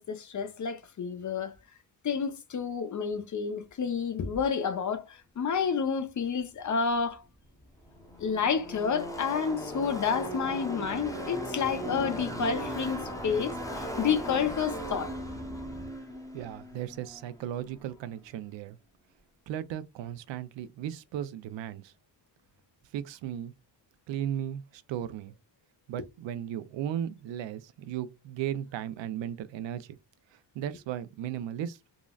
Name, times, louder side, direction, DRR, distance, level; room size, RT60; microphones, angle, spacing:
voice 1, 0.0-1.5 2.0-7.2 8.2-15.1, left 6 dB, 40° left, 0.7 m, -30 dB
Car passing by / Race car auto racing, 7.1-7.2 7.3-17.9, equal, 5° left, 0.8 m, -38 dB
voice 2, 16.3-18.8 19.5-21.9 22.9-23.5 24.1-25.3 25.9-30.0 30.3-31.8, right 10 dB, 70° right, 0.5 m, -36 dB
3.7 x 2.0 x 2.3 m
cardioid pair, 80°, 47 cm